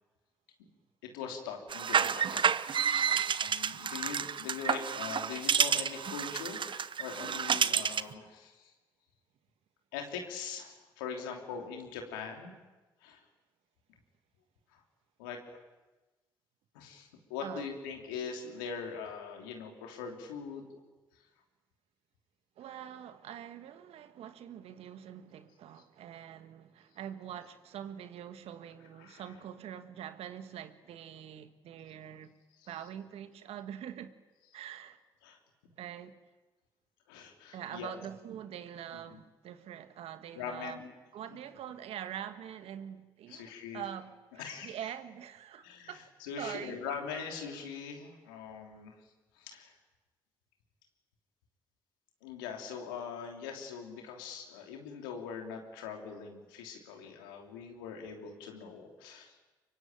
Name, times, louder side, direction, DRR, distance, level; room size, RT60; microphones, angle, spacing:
voice 1, 1.0-8.7 9.9-12.5 13.0-13.2 14.7-14.8 15.2-15.4 16.7-20.8 29.0-29.2 35.2-35.4 37.1-38.0 38.9-39.2 40.3-40.9 43.3-43.8 44.4-44.7 45.6-48.9 49.3-49.7 52.2-59.4, left 6 dB, 90° left, 3.1 m, -42 dB
sound 1, 1.7-8.1, right 7 dB, 50° right, 0.9 m, -30 dB
voice 2, 22.6-32.3 32.7-34.1 34.5-35.0 35.8-36.2 37.5-40.8 41.1-46.1 46.4-46.8 47.1-47.3, right 10 dB, 70° right, 1.6 m, -44 dB
24.0 x 23.5 x 9.1 m
hypercardioid pair, 45°, 11 cm